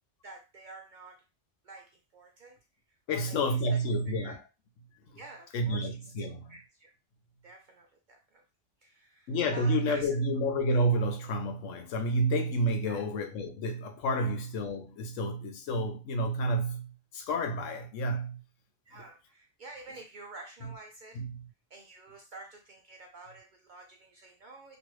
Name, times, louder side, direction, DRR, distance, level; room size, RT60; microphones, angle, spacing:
voice 1, 0.2-1.2 1.6-2.6 3.1-4.4 5.1-6.9 7.4-8.4 8.8-10.2 12.9-13.0 14.2-14.3 18.9-21.2 21.7-24.8, right 2 dB, 65° right, 0.5 m, -49 dB
voice 2, 3.1-4.4 5.5-6.6 9.3-18.4 18.9-19.0 21.1-21.4, right 1 dB, 90° left, 1.0 m, -30 dB
3.0 x 2.6 x 3.0 m
omnidirectional pair, 1.3 m